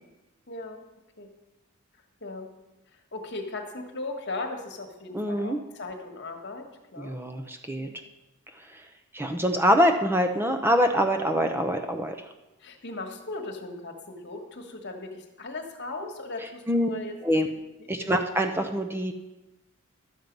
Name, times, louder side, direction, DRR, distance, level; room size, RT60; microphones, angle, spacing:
voice 1, 0.5-0.8 1.2-1.3 2.2-2.5 2.9-6.6 6.9-7.2 7.8-8.0 12.6-17.1 17.6-18.1, left 2 dB, 55° left, 4 dB, 1.5 m, -38 dB
voice 2, 5.1-5.6 7.0-7.9 8.7-8.8 9.1-12.2 16.7-16.9 17.2-17.5 17.9-19.1, equal, 10° right, 5 dB, 0.6 m, -24 dB
12.0 x 7.5 x 5.3 m, 1.0 s
head